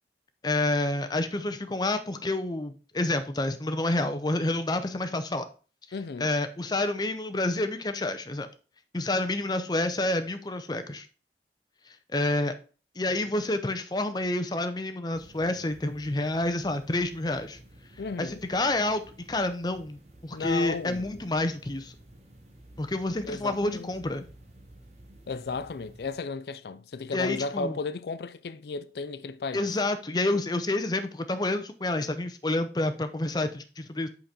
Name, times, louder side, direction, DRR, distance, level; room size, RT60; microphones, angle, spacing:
voice 1, 0.4-5.4 6.2-8.5 8.9-11.1 12.1-12.5 13.0-17.6 18.2-19.0 19.3-21.9 22.8-24.3 27.1-27.8 29.5-34.1, left 2 dB, 25° left, 0.6 m, -28 dB
voice 2, 5.9-6.3 18.0-18.4 20.3-21.2 23.2-23.9 25.3-29.7, left 4 dB, 65° left, 0.4 m, -34 dB
sound 1, 15.1-26.2, right 1 dB, 40° right, 1.3 m, -53 dB
5.6 x 5.2 x 4.2 m
head